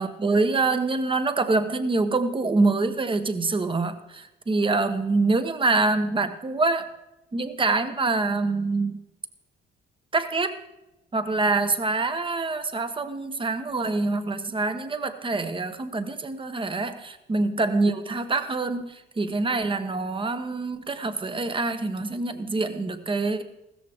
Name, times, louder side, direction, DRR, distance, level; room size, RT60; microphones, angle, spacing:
voice 1, 0.0-6.9 7.3-9.0 10.1-10.6 11.1-23.4, right 3 dB, 25° right, 10 dB, 1.1 m, -25 dB
15.5 x 13.5 x 3.6 m, 0.96 s
cardioid pair, 90°, 20 cm